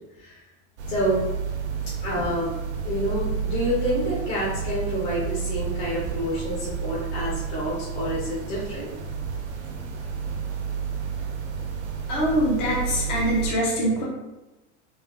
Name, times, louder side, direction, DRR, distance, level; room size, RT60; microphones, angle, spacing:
sound 1, 0.8-13.5, right 7 dB, 70° right, 0.7 m, -31 dB
voice 1, 0.9-1.2 2.0-2.5 2.8-8.9, equal, 70° left, -8 dB, 1.4 m, -28 dB
voice 2, 12.1-14.0, equal, 20° left, -3 dB, 0.4 m, -24 dB
3.8 x 2.2 x 2.8 m, 1.1 s
supercardioid pair, 175°, 35 cm